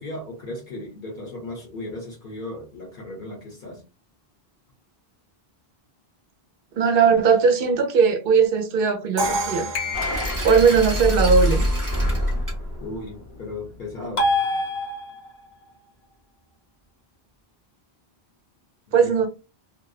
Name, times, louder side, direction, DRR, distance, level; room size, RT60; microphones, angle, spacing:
voice 1, 0.0-3.8 10.3-10.4 12.8-14.3 19.0-19.1, left 2 dB, 55° left, 0.8 m, -36 dB
voice 2, 6.8-9.7 10.4-11.6 18.9-19.3, right 5 dB, 65° right, 0.8 m, -18 dB
Crash cymbal, 9.2-11.1, right 2 dB, 40° right, 0.4 m, -29 dB
sound 1, 9.7-10.7 14.2-15.4, left 2 dB, 85° left, 0.9 m, -26 dB
sound 2, 9.9-14.0, equal, 20° right, 0.8 m, -25 dB
2.6 x 2.1 x 2.3 m
omnidirectional pair, 1.0 m